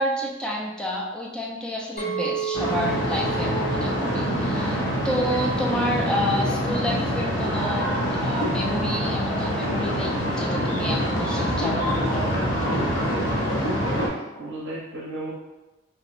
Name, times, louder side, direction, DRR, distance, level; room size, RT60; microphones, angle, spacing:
voice 1, 0.0-4.8 5.0-12.4, equal, 5° left, -3 dB, 0.3 m, -29 dB
Chink clink, 2.0-6.3 6.8-7.1, right 7 dB, 55° left, 0.9 m, -34 dB
sound 1, 2.5-14.1, equal, 75° left, 0.6 m, -25 dB
voice 2, 13.8-15.3, right 1 dB, 65° right, -5 dB, 0.5 m, -34 dB
2.6 x 2.0 x 2.5 m, 1.0 s
head